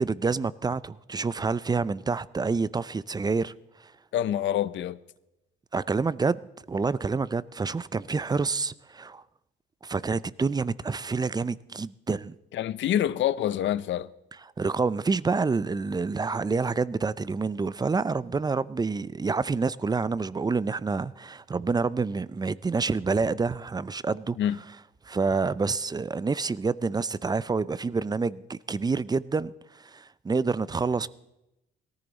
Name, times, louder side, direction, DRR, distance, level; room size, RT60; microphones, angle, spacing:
voice 1, 0.0-3.5 3.8-3.9 5.7-6.4 6.7-9.2 9.8-12.3 14.4-24.4 25.1-31.1, right 4 dB, 20° right, 0.5 m, -28 dB
voice 2, 4.1-5.0 12.5-14.1 24.4-24.6, left 11 dB, 70° left, 0.6 m, -26 dB
18.5 x 14.0 x 4.0 m
cardioid pair, 90°, 20 cm